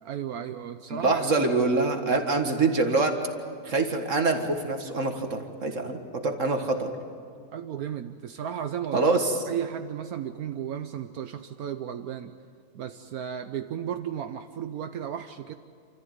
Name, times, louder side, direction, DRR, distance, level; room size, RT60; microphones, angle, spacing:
voice 1, 0.0-1.2 7.5-9.0 9.5-12.3 12.7-15.5, right 9 dB, 75° right, 8 dB, 1.2 m, -34 dB
voice 2, 0.9-3.1 3.7-6.9 8.9-9.4, right 3 dB, 55° right, 5 dB, 2.0 m, -25 dB
29.5 x 14.0 x 9.4 m, 2.3 s
omnidirectional pair, 1.7 m